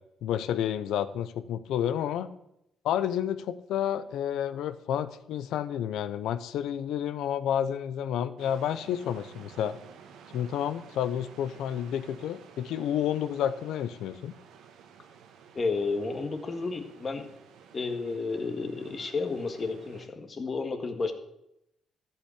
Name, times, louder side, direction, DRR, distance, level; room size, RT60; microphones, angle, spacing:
voice 1, 0.2-2.3 2.8-9.8 10.3-14.3, left 10 dB, 85° left, 13 dB, 0.7 m, -30 dB
sound 1, 8.4-20.1, right 7 dB, 85° right, 1.3 m, -53 dB
voice 2, 15.5-17.3 17.7-21.1, left 4 dB, 40° left, 6 dB, 1.7 m, -32 dB
13.5 x 5.7 x 8.3 m, 0.82 s
cardioid pair, 90°, 0 cm